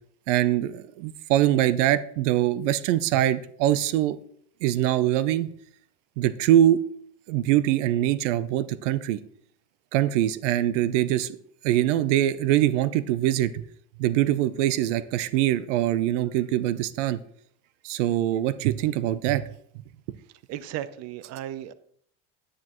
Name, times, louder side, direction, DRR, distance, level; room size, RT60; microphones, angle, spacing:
voice 1, 0.3-4.2 4.6-5.5 6.2-6.8 7.3-9.2 9.9-11.4 11.6-13.6 14.0-17.2 17.8-19.4, right 13 dB, 85° right, 15 dB, 0.6 m, -23 dB
voice 2, 20.5-21.7, right 12 dB, 45° right, 15 dB, 0.6 m, -35 dB
10.0 x 9.4 x 3.0 m, 0.65 s
supercardioid pair, 120°, 35 cm